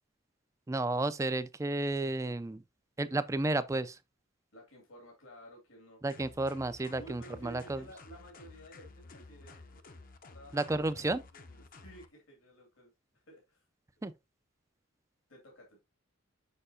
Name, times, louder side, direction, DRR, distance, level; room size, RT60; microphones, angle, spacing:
voice 1, 0.7-2.6 3.0-4.0 6.0-7.8 10.5-11.2 14.0-14.1, right 2 dB, 15° right, 0.3 m, -32 dB
voice 2, 4.5-6.0 7.0-9.8 10.3-13.7 15.3-15.8, right 2 dB, 80° left, 2.4 m, -54 dB
sound 1, 6.1-12.1, left 3 dB, 40° left, 0.7 m, -53 dB
6.7 x 5.5 x 2.7 m
head